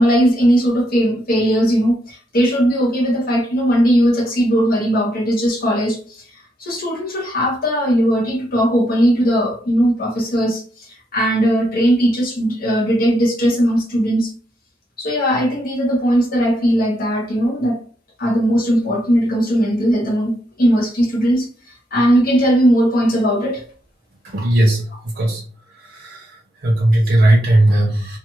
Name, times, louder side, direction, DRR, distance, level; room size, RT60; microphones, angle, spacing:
voice 1, 0.0-6.2 6.6-14.3 15.0-17.8 18.2-20.3 20.6-21.5 21.9-23.6, equal, 50° left, 0.9 m, -18 dB
voice 2, 24.2-25.4 25.8-28.2, right 1 dB, 45° right, 0.7 m, -17 dB
2.3 x 2.3 x 3.0 m
head